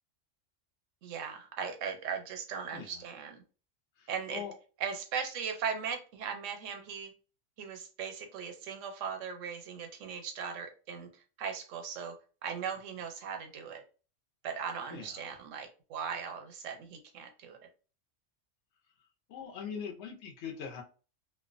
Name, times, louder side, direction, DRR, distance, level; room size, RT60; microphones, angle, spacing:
voice 1, 1.0-3.4 4.1-4.4 4.8-7.1 7.6-11.1 11.4-12.1 12.4-13.8 14.4-17.6, right 6 dB, 85° right, 5 dB, 0.9 m, -38 dB
voice 2, 2.7-3.0 4.0-4.5 14.9-15.2 19.3-20.8, left 7 dB, 70° left, 1 dB, 0.9 m, -42 dB
2.4 x 2.1 x 2.4 m, 0.36 s
omnidirectional pair, 1.3 m